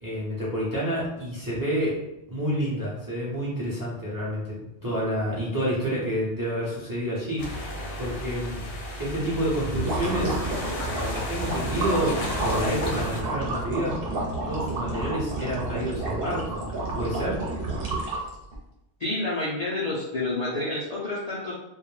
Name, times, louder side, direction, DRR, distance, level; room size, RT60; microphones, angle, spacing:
voice 1, 0.0-2.0 2.3-8.6 9.0-10.4 10.8-14.0 14.4-16.6 16.9-17.4, equal, 25° right, -7 dB, 0.5 m, -29 dB
sound 1, 7.4-13.2, left 1 dB, 80° left, 0.9 m, -34 dB
sound 2, 9.6-18.6, right 2 dB, 65° right, 0.8 m, -30 dB
voice 2, 19.0-21.5, left 2 dB, 50° left, -7 dB, 0.5 m, -29 dB
2.3 x 2.1 x 3.1 m, 0.87 s
omnidirectional pair, 1.1 m